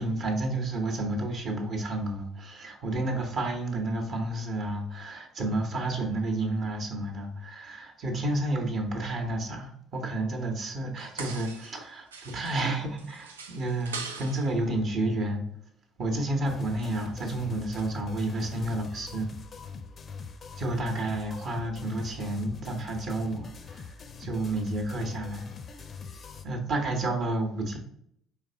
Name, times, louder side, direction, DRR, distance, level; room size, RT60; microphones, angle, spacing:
voice 1, 0.0-15.5 16.0-19.3 20.6-23.8 24.2-25.5 26.4-27.8, right 2 dB, 45° right, 3 dB, 1.0 m, -30 dB
sound 1, 11.0-11.9 12.1-14.6 16.8-17.3 17.7-17.8, right 4 dB, 75° right, 0.4 m, -42 dB
sound 2, 16.4-26.4, left 5 dB, 35° left, 0.4 m, -43 dB
5.0 x 3.3 x 2.8 m, 0.71 s
figure-of-eight pair, 55°, 0 cm